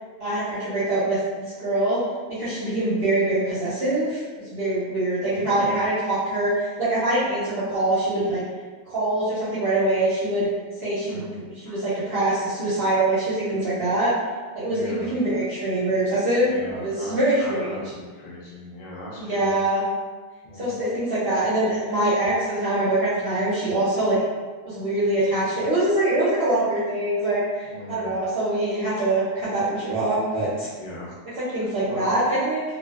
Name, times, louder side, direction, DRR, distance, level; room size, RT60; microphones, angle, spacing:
voice 1, 0.2-2.0 2.3-8.4 8.9-10.5 10.8-14.1 14.5-17.8 19.2-19.8 20.6-24.2 24.7-30.7 31.4-32.6, right 1 dB, 55° right, -10 dB, 0.6 m, -24 dB
voice 2, 5.3-5.8 11.1-11.5 14.6-15.1 16.4-19.6 20.4-20.8 27.6-28.2 30.6-31.1 31.6-32.2, left 1 dB, 50° left, -7 dB, 0.5 m, -38 dB
2.4 x 2.2 x 2.3 m, 1.4 s
omnidirectional pair, 1.6 m